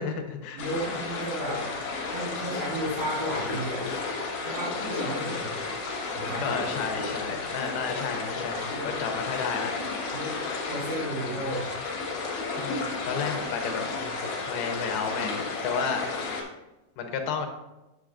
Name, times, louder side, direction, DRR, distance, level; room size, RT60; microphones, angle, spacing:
voice 1, 0.0-1.0 6.4-8.7 9.0-10.1 12.6-16.4 17.0-17.5, left 5 dB, 85° left, 5 dB, 2.7 m, -33 dB
voice 2, 0.5-1.7 2.1-4.0 4.4-5.6 6.1-6.6 8.7-8.9 10.1-10.3 10.7-11.7, right 1 dB, 70° right, -12 dB, 4.3 m, -33 dB
sound 1, 0.6-16.4, left 4 dB, 65° left, 2.6 m, -32 dB
9.0 x 6.5 x 2.5 m, 1.0 s
omnidirectional pair, 4.2 m